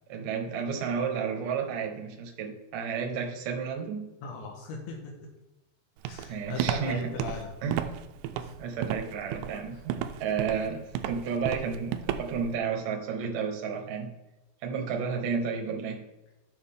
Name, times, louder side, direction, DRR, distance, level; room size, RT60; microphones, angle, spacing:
voice 1, 0.1-4.1 6.3-7.1 7.6-7.8 8.6-14.1 14.6-16.0, right 6 dB, 70° right, 2 dB, 2.1 m, -32 dB
voice 2, 4.2-5.1 6.0-7.5 8.4-8.5, left 3 dB, 80° left, 1 dB, 3.5 m, -38 dB
Walk footsteps, 6.1-12.5, right 10 dB, 85° right, 2.3 m, -33 dB
10.5 x 6.7 x 3.6 m, 1.0 s
omnidirectional pair, 5.2 m